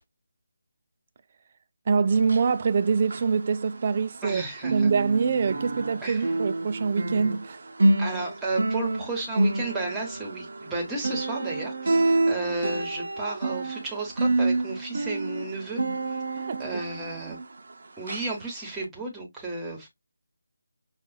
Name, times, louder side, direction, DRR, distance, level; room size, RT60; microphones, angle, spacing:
voice 1, 1.9-4.4 4.7-7.6 16.3-16.6 17.3-17.4, right 5 dB, 35° right, 0.4 m, -24 dB
sound 1, 2.2-4.3 4.6-17.7 18.1-18.3 18.8-18.9, right 2 dB, 55° right, 0.7 m, -28 dB
voice 2, 4.2-4.9 6.0-6.3 8.0-15.8 16.1-17.4 18.0-19.9, right 2 dB, 5° right, 1.3 m, -33 dB
5.9 x 2.4 x 2.4 m
figure-of-eight pair, 155°, 0 cm